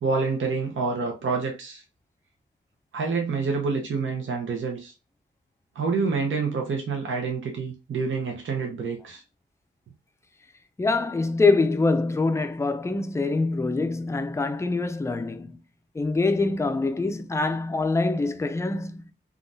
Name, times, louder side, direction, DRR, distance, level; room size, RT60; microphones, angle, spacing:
voice 1, 0.0-1.8 2.9-4.9 5.7-9.2, right 4 dB, 75° right, 0.7 m, -27 dB
voice 2, 10.8-15.6 15.9-19.0, left 3 dB, 15° left, 0.4 m, -24 dB
3.7 x 2.3 x 2.5 m
cardioid pair, 80°, 20 cm